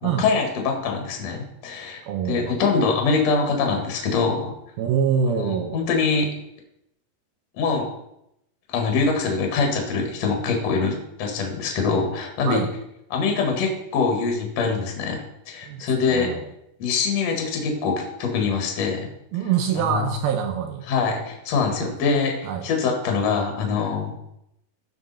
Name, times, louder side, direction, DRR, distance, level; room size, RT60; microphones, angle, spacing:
voice 1, 0.0-2.0 2.3-4.5 5.3-6.3 7.6-7.9 8.7-12.6 13.1-15.2 15.5-16.3 16.8-19.1 19.7-20.1 20.9-24.1, left 4 dB, 50° left, 2 dB, 2.5 m, -24 dB
voice 2, 2.1-2.9 4.8-5.8 12.5-12.7 15.7-16.4 19.3-20.9 21.6-22.0 22.4-22.7, right 7 dB, 80° right, 6 dB, 2.4 m, -25 dB
14.5 x 6.1 x 4.2 m, 0.80 s
omnidirectional pair, 4.7 m